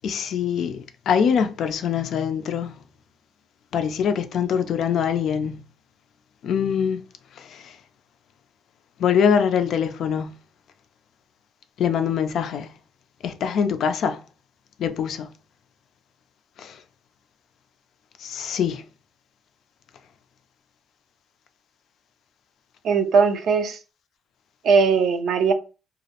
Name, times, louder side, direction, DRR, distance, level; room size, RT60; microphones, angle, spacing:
voice 1, 0.0-2.8 3.7-5.6 6.4-7.0 7.4-7.6 9.0-10.3 11.8-12.7 13.2-14.2 14.8-15.3 16.6-16.8 18.2-18.8, left 7 dB, 70° left, 0.3 m, -23 dB
voice 2, 22.8-23.8 24.6-25.5, right 5 dB, 75° right, 0.4 m, -19 dB
2.3 x 2.0 x 2.8 m
cardioid pair, 90°, 0 cm